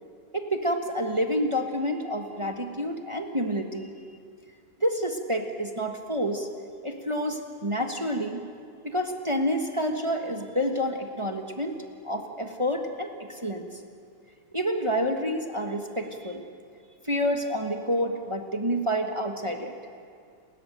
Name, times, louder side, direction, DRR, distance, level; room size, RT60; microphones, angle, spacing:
voice 1, 0.3-3.9 4.8-6.5 6.8-8.4 8.8-13.7 14.5-16.4 17.0-19.7, equal, 15° right, 3 dB, 1.2 m, -28 dB
30.0 x 14.0 x 9.2 m, 2.2 s
omnidirectional pair, 2.4 m